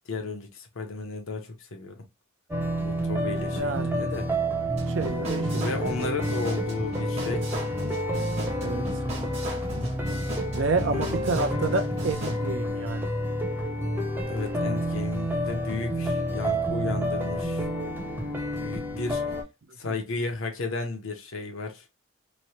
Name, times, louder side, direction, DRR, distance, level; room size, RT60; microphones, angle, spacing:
voice 1, 0.1-2.1 2.8-4.3 5.5-7.7 10.6-11.3 14.3-17.7 18.6-19.2 19.8-21.8, left 3 dB, 70° left, 0.7 m, -34 dB
sound 1, 2.5-19.4, equal, 10° right, 0.5 m, -29 dB
voice 2, 3.5-3.9 4.9-5.6 8.6-9.1 10.5-13.1 19.8-19.9, right 3 dB, 60° right, 0.5 m, -29 dB
sound 2, 4.8-12.4, right 1 dB, 30° right, 0.9 m, -38 dB
3.0 x 2.1 x 2.8 m
head